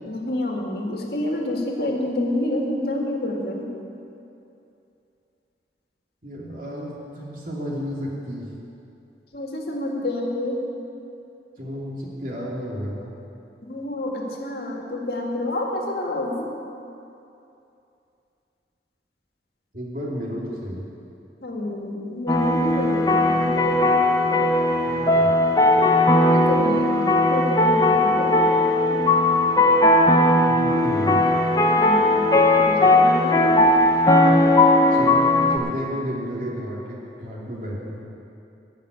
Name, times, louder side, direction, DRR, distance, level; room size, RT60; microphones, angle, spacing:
voice 1, 0.1-3.7 9.3-10.6 13.6-16.5 21.4-23.6 26.3-29.0 31.8-32.1 32.6-33.5, left 1 dB, 60° left, -1 dB, 1.8 m, -28 dB
voice 2, 6.2-8.5 11.6-13.1 19.7-20.9 24.8-25.3 30.4-31.4 34.9-38.0, equal, 50° right, -4 dB, 2.7 m, -32 dB
sound 1, 22.3-35.6, left 1 dB, 20° left, 0.8 m, -18 dB
14.5 x 5.9 x 9.5 m, 2.7 s
head